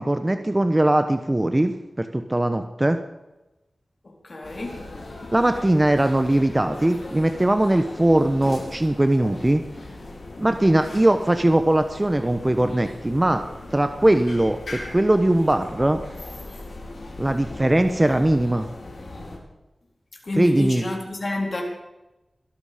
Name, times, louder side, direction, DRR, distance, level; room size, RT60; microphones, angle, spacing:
voice 1, 0.0-3.0 5.3-9.6 10.4-13.4 13.7-16.0 17.2-18.7 20.4-20.8, right 1 dB, 25° right, 8 dB, 1.1 m, -20 dB
voice 2, 4.0-4.8 20.2-21.6, left 2 dB, 50° left, 0 dB, 3.6 m, -29 dB
sound 1, 4.4-19.4, left 2 dB, 75° left, 4.8 m, -39 dB
22.0 x 11.0 x 5.2 m, 0.98 s
wide cardioid pair, 65°, 0 cm